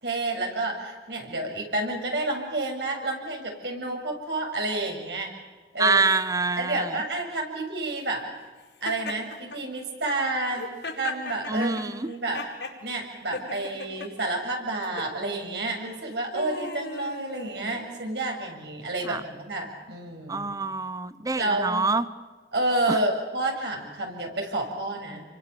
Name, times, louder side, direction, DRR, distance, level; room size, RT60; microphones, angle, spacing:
voice 1, 0.0-5.3 5.7-6.0 6.6-8.2 8.8-10.6 11.0-12.4 12.8-20.5 21.4-21.8 22.5-25.2, right 2 dB, 70° right, 2 dB, 7.1 m, -30 dB
voice 2, 5.8-7.0 11.5-12.1 19.0-19.2 20.3-22.1 22.9-23.0, right 3 dB, 20° right, 14 dB, 1.0 m, -25 dB
Laughter, 8.8-9.6 10.4-12.8 13.3-14.1 14.8-15.1 15.9-18.1, left 3 dB, 75° left, 4.9 m, -38 dB
29.5 x 24.0 x 7.1 m, 1.4 s
head